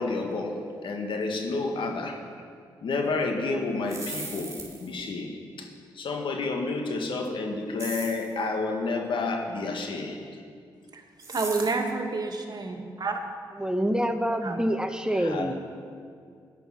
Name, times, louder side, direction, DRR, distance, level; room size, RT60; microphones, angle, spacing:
voice 1, 0.0-2.2 2.8-4.5 4.8-5.7 5.9-10.3 15.2-15.5, left 3 dB, 65° left, 1.8 m, -30 dB
sound 1, 3.7-5.0 7.8-8.3 11.2-11.9, right 3 dB, 30° right, 4.1 m, -38 dB
voice 2, 11.3-13.2 14.4-14.6, right 3 dB, 45° right, 1.9 m, -29 dB
voice 3, 13.6-15.5, equal, 10° right, 1.0 m, -26 dB
14.0 x 10.5 x 6.0 m
supercardioid pair, 45°, 9 cm